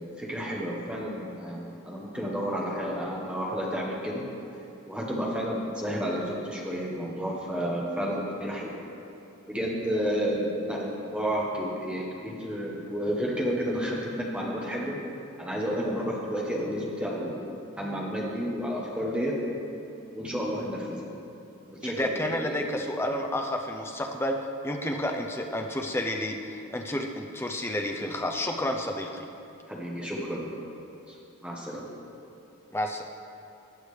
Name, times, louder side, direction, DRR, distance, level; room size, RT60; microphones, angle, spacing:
voice 1, 0.0-4.2 4.9-8.7 9.5-15.0 15.4-17.4 17.8-19.4 20.1-21.1 21.6-22.0 22.3-22.5 29.7-30.5 31.1-31.2 31.4-31.9, equal, 5° right, -3 dB, 1.1 m, -31 dB
voice 2, 21.8-29.3 32.7-33.0, left 1 dB, 10° left, 3 dB, 0.5 m, -30 dB
15.0 x 8.8 x 3.2 m, 2.8 s
head